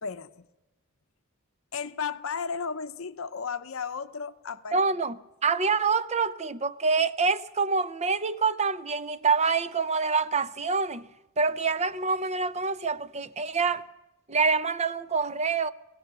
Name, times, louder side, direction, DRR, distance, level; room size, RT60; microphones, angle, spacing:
voice 1, 0.0-0.5 1.7-4.8 5.1-5.2, left 6 dB, 70° left, 0.8 m, -34 dB
voice 2, 4.7-11.1 11.4-13.8 14.3-15.7, right 4 dB, 30° right, 0.6 m, -26 dB
25.0 x 17.0 x 6.8 m
head